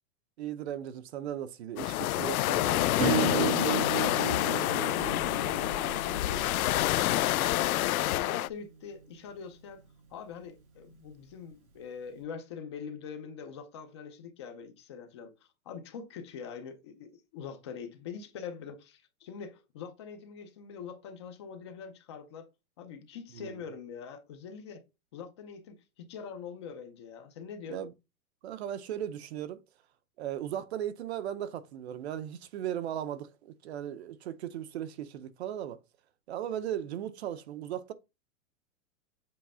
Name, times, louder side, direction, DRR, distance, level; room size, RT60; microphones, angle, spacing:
voice 1, 0.4-3.8 23.3-23.5 27.7-27.9 28.4-29.6 30.2-35.8 36.3-37.9, right 10 dB, 50° right, 0.7 m, -37 dB
sound 1, 1.8-8.5, left 15 dB, 80° left, 0.5 m, -28 dB
Acoustic guitar / Strum, 3.0-8.2, right 5 dB, 90° right, 3.7 m, -34 dB
voice 2, 4.2-5.1 5.7-7.0 7.8-9.8 10.1-15.3 15.7-22.5 22.8-24.8 25.1-27.8, left 6 dB, 20° left, 0.5 m, -43 dB
7.6 x 3.2 x 5.4 m
supercardioid pair, 170°, 42 cm